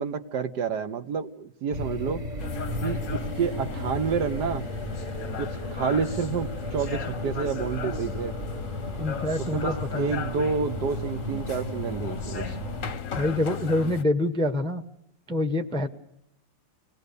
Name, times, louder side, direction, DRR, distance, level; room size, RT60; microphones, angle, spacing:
voice 1, 0.0-2.2 2.8-4.7 5.4-8.3 9.5-12.6, right 6 dB, 60° right, 9 dB, 1.6 m, -29 dB
sound 1, 1.7-13.0, equal, 25° right, 1.4 m, -35 dB
sound 2, 2.4-14.0, left 8 dB, 50° left, 1.1 m, -36 dB
voice 2, 9.0-10.1 13.2-14.8 15.3-15.9, left 1 dB, 5° left, 7 dB, 0.7 m, -26 dB
26.0 x 19.0 x 6.8 m, 0.80 s
omnidirectional pair, 2.1 m